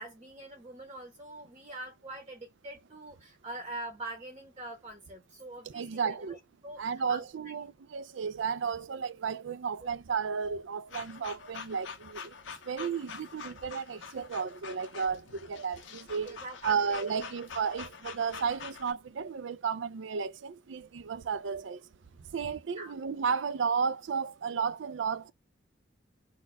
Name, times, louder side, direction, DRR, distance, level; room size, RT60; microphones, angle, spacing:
voice 1, 0.0-6.4 6.6-6.8 7.1-7.5 16.1-17.4 22.8-22.9, right 2 dB, 25° right, 1.0 m, -44 dB
voice 2, 5.7-6.4 6.8-12.4 12.6-16.4 16.6-21.9 22.2-25.3, right 6 dB, 70° right, 0.5 m, -33 dB
sound 1, 10.9-18.9, left 6 dB, 70° left, 0.7 m, -45 dB
4.2 x 2.4 x 4.5 m
head